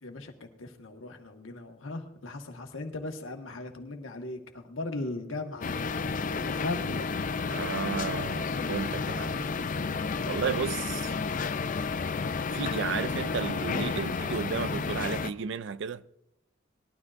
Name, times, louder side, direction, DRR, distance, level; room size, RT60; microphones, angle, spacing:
voice 1, 0.0-7.0, left 2 dB, 90° left, 1.5 m, -38 dB
sound 1, 5.6-15.3, left 4 dB, 40° left, 0.4 m, -31 dB
voice 2, 7.5-9.5 10.2-11.1 12.5-16.0, right 6 dB, 65° right, 0.4 m, -33 dB
20.0 x 12.0 x 2.5 m
head